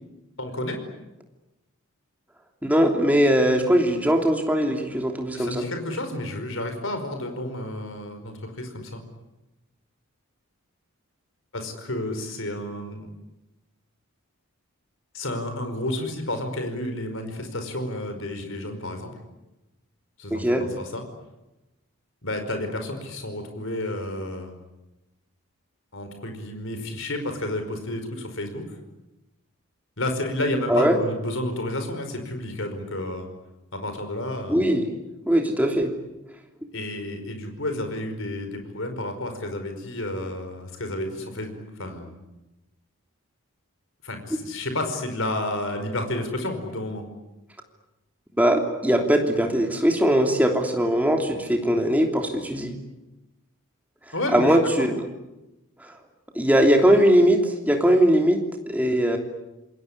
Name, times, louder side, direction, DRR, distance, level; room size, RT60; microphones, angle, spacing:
voice 1, 0.4-0.8 5.3-9.0 11.5-13.1 15.1-19.1 20.2-21.0 22.2-24.5 25.9-28.8 30.0-33.3 33.7-34.7 36.7-42.2 44.0-47.1 54.1-54.6, left 1 dB, 60° left, 6 dB, 5.0 m, -31 dB
voice 2, 2.6-5.6 20.3-20.6 30.7-31.0 34.5-34.9 35.3-35.9 48.4-52.7 54.3-55.0 56.3-58.4 58.7-59.2, equal, 5° right, 3 dB, 3.1 m, -20 dB
27.5 x 21.0 x 9.9 m, 0.99 s
head